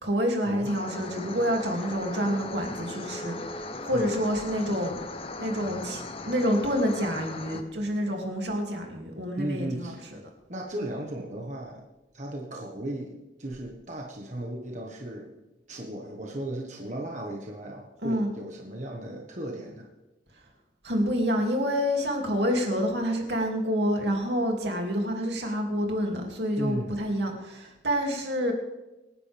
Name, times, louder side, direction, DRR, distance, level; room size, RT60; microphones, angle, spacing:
voice 1, 0.0-5.0 5.4-10.2 18.0-18.3 20.8-28.5, equal, 75° right, 2 dB, 2.7 m, -28 dB
sound 1, 0.6-7.6, left 2 dB, 30° left, 0.9 m, -38 dB
voice 2, 3.9-4.2 9.4-10.0 10.5-11.8 12.1-15.3 15.7-19.9 26.6-27.0, right 1 dB, 40° right, 0 dB, 1.5 m, -36 dB
26.0 x 10.5 x 3.5 m, 1.0 s
head